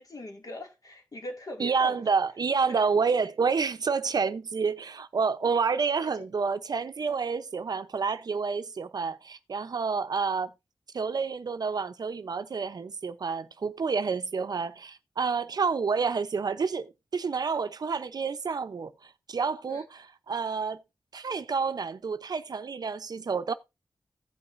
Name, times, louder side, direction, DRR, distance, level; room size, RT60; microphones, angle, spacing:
voice 1, 0.0-2.0 6.0-6.2 19.7-19.8, left 1 dB, 50° left, 2.2 m, -41 dB
voice 2, 1.6-10.5 10.9-20.8 21.1-23.5, right 5 dB, 60° right, 0.7 m, -29 dB
16.0 x 5.6 x 2.6 m
wide cardioid pair, 75°, 8 cm